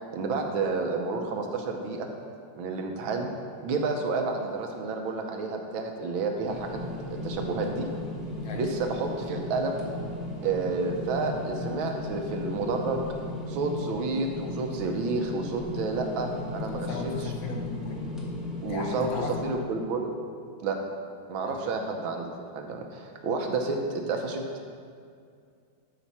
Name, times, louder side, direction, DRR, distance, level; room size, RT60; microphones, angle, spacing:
voice 1, 0.1-2.1 2.6-3.3 3.6-6.8 7.1-7.9 8.6-9.8 10.4-13.1 13.5-17.1 18.6-19.1 19.4-20.1 20.6-20.8 21.3-24.6, right 3 dB, 90° right, 3 dB, 1.7 m, -30 dB
sound 1, 6.4-19.5, left 2 dB, ahead, 0.7 m, -36 dB
voice 2, 16.7-18.1 18.7-19.4 21.5-21.7, left 4 dB, 80° left, 1 dB, 1.8 m, -36 dB
11.5 x 5.0 x 4.2 m, 2.3 s
omnidirectional pair, 2.1 m